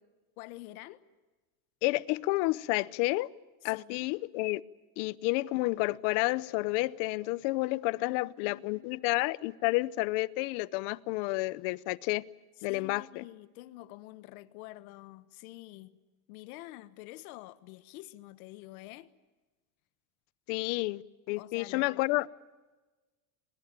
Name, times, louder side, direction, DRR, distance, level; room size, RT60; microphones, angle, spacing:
voice 1, 0.4-1.0 3.6-4.1 8.0-9.1 12.7-16.0 16.3-19.1 21.4-22.0, left 17 dB, 80° left, 1.4 m, -48 dB
voice 2, 1.8-3.3 3.6-4.6 5.0-12.2 12.6-13.2 20.5-21.0 21.3-22.3, left 21 dB, 55° left, 0.8 m, -30 dB
24.5 x 21.0 x 8.9 m
cardioid pair, 170°, 42 cm